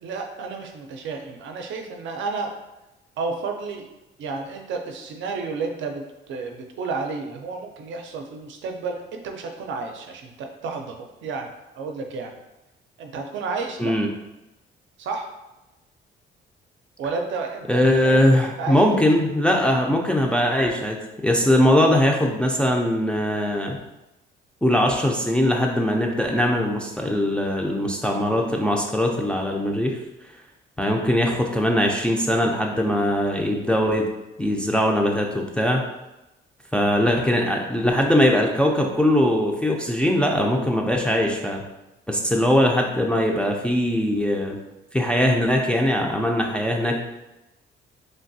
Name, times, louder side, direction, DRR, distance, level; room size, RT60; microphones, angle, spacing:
voice 1, 0.0-2.5 3.2-3.9 4.2-11.0 11.2-11.5 11.8-12.4 13.0-13.9 15.0-15.3 17.0-19.1, right 4 dB, 75° right, 3 dB, 0.5 m, -31 dB
voice 2, 17.7-23.8 24.6-30.0 30.8-34.1 34.4-35.8 36.7-41.6 42.1-44.6 44.9-47.0, left 1 dB, 5° left, 0 dB, 0.4 m, -21 dB
3.3 x 2.3 x 2.6 m, 0.98 s
cardioid pair, 90°, 20 cm